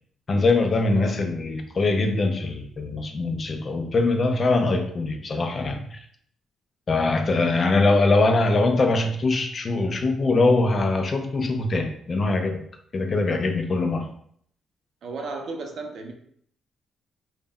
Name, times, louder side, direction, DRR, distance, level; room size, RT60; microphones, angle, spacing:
voice 1, 0.3-6.0 6.9-12.6 12.9-14.1, left 3 dB, 35° left, 5 dB, 0.3 m, -22 dB
voice 2, 15.0-16.1, right 3 dB, 60° right, 3 dB, 0.4 m, -34 dB
2.0 x 2.0 x 3.6 m, 0.64 s
cardioid pair, 135°, 0 cm